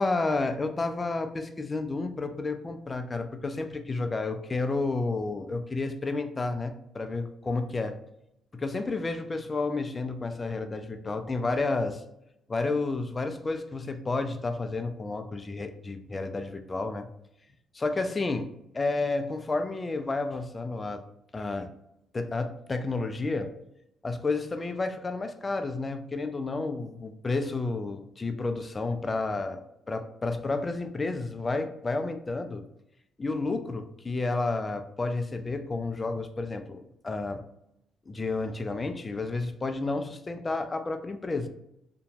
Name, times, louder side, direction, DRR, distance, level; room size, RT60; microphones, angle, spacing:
voice 1, 0.0-8.0 8.5-12.0 12.5-17.1 17.7-18.5 18.7-21.0 21.3-21.7 22.1-23.5 24.0-29.6 29.9-32.6 33.2-37.4 38.1-41.5, left 3 dB, 25° left, 8 dB, 0.3 m, -31 dB
2.9 x 2.2 x 2.7 m, 0.80 s
cardioid pair, 90°, 0 cm